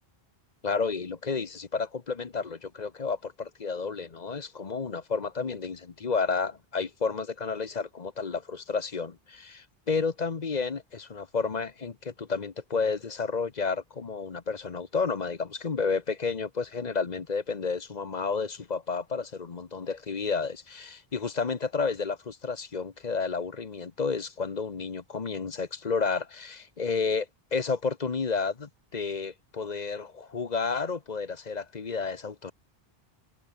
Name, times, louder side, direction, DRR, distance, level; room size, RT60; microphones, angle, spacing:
voice 1, 0.6-32.5, left 5 dB, 45° left, 1.1 m, -31 dB
omnidirectional pair, 1.0 m